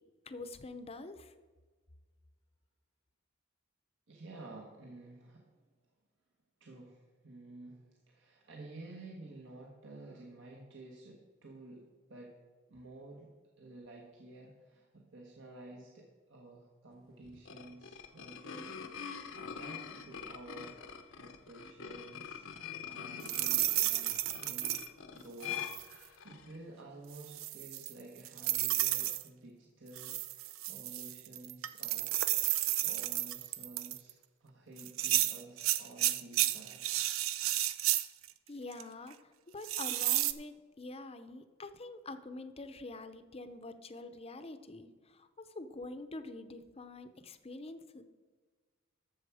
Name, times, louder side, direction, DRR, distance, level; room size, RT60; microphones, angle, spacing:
voice 1, 0.3-1.3 38.5-39.2 39.5-48.0, left 2 dB, 30° left, 10 dB, 0.7 m, -46 dB
voice 2, 4.1-5.4 6.6-12.4 12.7-13.3 13.6-18.7 19.0-20.8 21.2-22.5 22.8-24.8 25.1-32.3 32.8-36.9, right 2 dB, 65° right, -1 dB, 1.5 m, -52 dB
sound 1, 17.2-26.6, left 7 dB, 70° left, 0.9 m, -45 dB
sound 2, 23.2-24.9 25.4-25.9 27.1-29.2 30.0-34.1 34.8-38.3 38.7-38.8 39.6-40.3, right 14 dB, 80° right, 0.5 m, -32 dB
13.0 x 7.0 x 4.9 m, 1.4 s
head